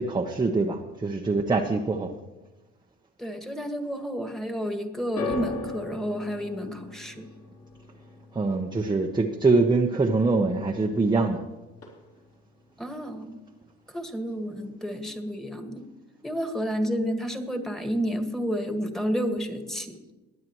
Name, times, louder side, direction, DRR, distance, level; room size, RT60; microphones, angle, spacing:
voice 1, 0.0-2.1 8.3-11.4, right 3 dB, 15° right, 1 dB, 1.0 m, -24 dB
voice 2, 3.2-7.3 12.8-13.4 13.9-15.9 16.2-20.0, equal, ahead, 5 dB, 1.8 m, -30 dB
sound 1, 5.2-11.4 11.7-12.4 13.1-13.2, left 3 dB, 50° left, 3.5 m, -39 dB
21.0 x 9.4 x 3.1 m, 1.1 s
hypercardioid pair, 75°, 30 cm